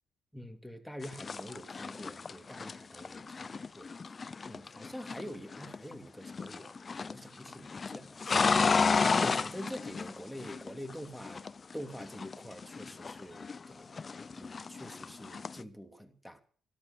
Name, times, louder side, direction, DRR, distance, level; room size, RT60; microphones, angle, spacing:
voice 1, 0.3-3.9 4.5-6.7 7.0-8.9 9.2-11.4 11.7-13.9 14.3-16.4, equal, ahead, 7 dB, 2.7 m, -45 dB
sound 1, 1.0-5.9 6.2-7.2 7.5-10.9 11.2-13.7 13.9-15.6, left 4 dB, 35° left, 0.7 m, -32 dB
13.0 x 13.0 x 6.9 m, 0.44 s
cardioid pair, 90°, 0 cm